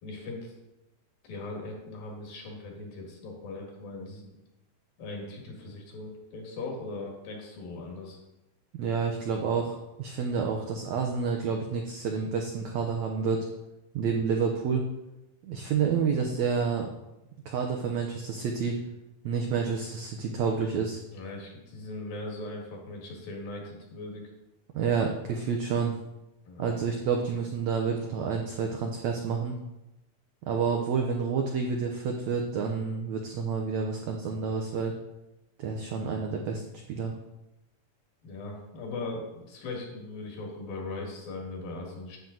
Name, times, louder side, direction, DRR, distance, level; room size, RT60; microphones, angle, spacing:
voice 1, 0.0-0.5 1.2-4.2 5.0-8.2 21.1-24.2 26.5-26.7 38.2-42.2, left 2 dB, 70° left, 0 dB, 3.6 m, -39 dB
voice 2, 8.7-13.5 13.9-14.8 15.4-16.9 17.4-18.8 19.2-21.0 24.7-25.9 26.6-29.5 30.5-34.9 35.6-36.6 36.9-37.1, right 5 dB, 90° right, 2 dB, 1.5 m, -29 dB
9.6 x 7.4 x 3.9 m, 0.94 s
omnidirectional pair, 4.2 m